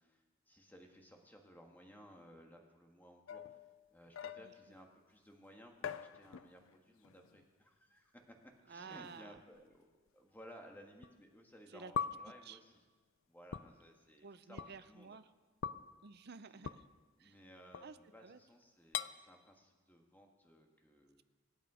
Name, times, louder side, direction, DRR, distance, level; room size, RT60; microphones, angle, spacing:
voice 1, 0.0-3.6 3.9-9.8 10.1-12.8 13.3-15.2 16.5-16.7 17.2-21.2, equal, 10° left, 1 dB, 1.7 m, -59 dB
sound 1, 3.3-4.8 5.8-6.8 7.0-7.4 8.4-8.5 9.4-9.5 11.0-11.1 11.9-12.4 13.5-13.7 14.6-14.7 15.6-15.9 16.6-16.8 17.7-18.2 18.9-19.1, left 7 dB, 65° left, 0.4 m, -42 dB
voice 2, 8.7-9.4 11.7-11.9 12.4-12.6 14.2-15.3 16.0-16.9 17.2-17.4 17.8-18.4, right 5 dB, 50° right, 13 dB, 0.6 m, -52 dB
25.5 x 9.1 x 5.0 m, 1.3 s
head